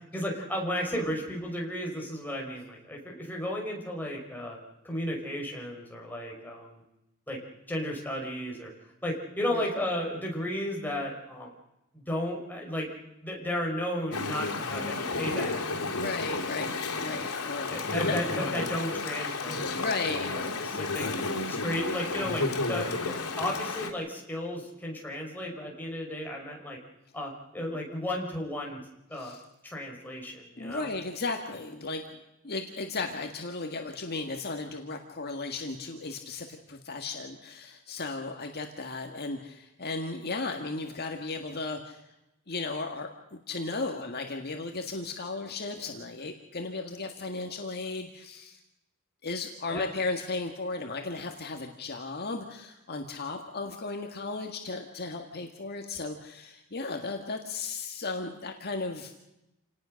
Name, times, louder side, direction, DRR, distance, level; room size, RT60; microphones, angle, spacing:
voice 1, 0.1-4.6 4.8-6.8 7.3-7.4 7.7-8.7 9.0-11.5 11.9-12.9 13.2-16.2 17.7-21.0 21.5-26.8 27.1-28.8 29.1-30.9 49.7-49.9, left 1 dB, 10° left, -1 dB, 5.4 m, -34 dB
Chatter / Stream, 14.1-23.9, left 3 dB, 75° left, 3.5 m, -32 dB
voice 2, 15.9-18.2 19.7-20.3 20.7-20.8 29.1-29.4 30.6-32.2 32.4-42.0 42.5-48.6 49.2-59.1, left 3 dB, 45° left, 3 dB, 1.8 m, -35 dB
28.5 x 19.0 x 6.5 m, 0.93 s
head